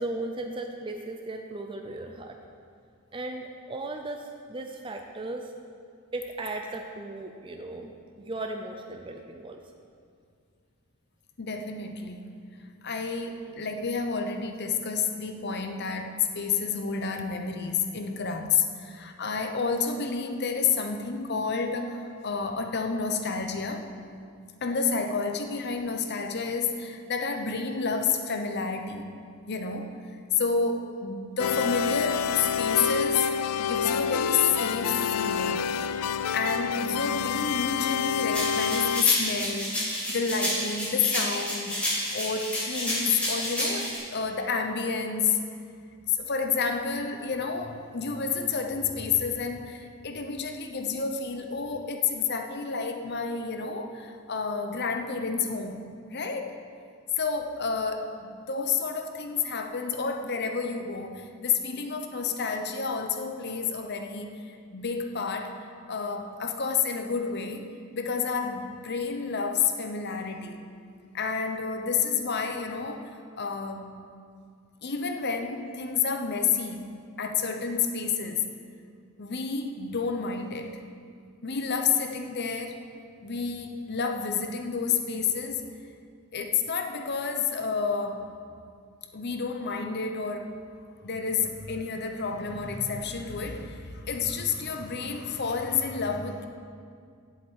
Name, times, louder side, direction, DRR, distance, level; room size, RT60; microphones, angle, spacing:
voice 1, 0.0-2.4 3.1-5.5 6.1-7.9 8.2-9.6, right 2 dB, 25° right, 4 dB, 0.5 m, -36 dB
voice 2, 11.4-12.3 12.8-23.9 24.6-29.2 29.5-29.9 30.3-33.3 33.6-35.7 36.3-39.8 40.1-45.4 46.1-56.6 57.2-70.6 71.1-74.0 74.8-78.5 79.2-80.8 81.4-82.9 83.2-85.6 86.3-88.3 89.1-90.5 91.0-96.5, left 5 dB, 50° left, 5 dB, 0.9 m, -30 dB
sound 1, 31.4-39.0, left 7 dB, 90° left, 0.4 m, -28 dB
sound 2, 38.3-44.0, equal, 5° left, 3.0 m, -30 dB
8.0 x 7.6 x 8.7 m, 2.2 s
head